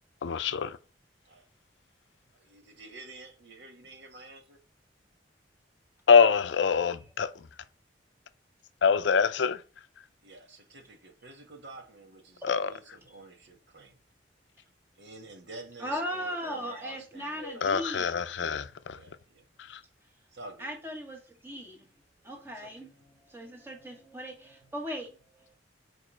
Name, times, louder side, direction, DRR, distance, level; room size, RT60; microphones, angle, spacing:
voice 1, 0.2-0.8 6.1-7.3 8.8-9.6 12.4-12.7 17.4-19.0 19.7-19.8, left 6 dB, 75° left, 0.5 m, -24 dB
voice 2, 2.4-4.6 10.2-14.0 15.0-17.8 18.9-19.5 20.3-20.7 22.6-22.9, right 2 dB, 70° right, 1.4 m, -49 dB
voice 3, 15.8-18.2 20.6-21.9 22.2-25.5, equal, 15° right, 1.7 m, -38 dB
5.0 x 4.6 x 5.6 m
head